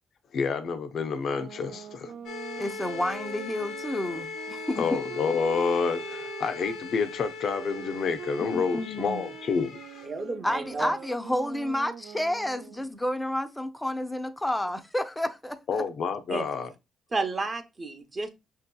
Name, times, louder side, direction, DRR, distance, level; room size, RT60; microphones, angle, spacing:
voice 1, 0.3-2.1 4.8-9.7 15.7-16.7, left 5 dB, 60° left, 0.5 m, -28 dB
sound 1, 1.2-6.8 7.5-12.9, right 9 dB, 70° right, 0.3 m, -44 dB
sound 2, 2.3-10.1, left 4 dB, 90° left, 0.9 m, -39 dB
voice 2, 2.6-5.0 8.4-9.3 10.4-15.8, left 1 dB, 10° left, 0.5 m, -30 dB
voice 3, 10.0-10.9 16.3-16.5 17.1-18.3, right 3 dB, 35° right, 0.7 m, -31 dB
5.9 x 2.8 x 2.2 m
cardioid pair, 90°, 0 cm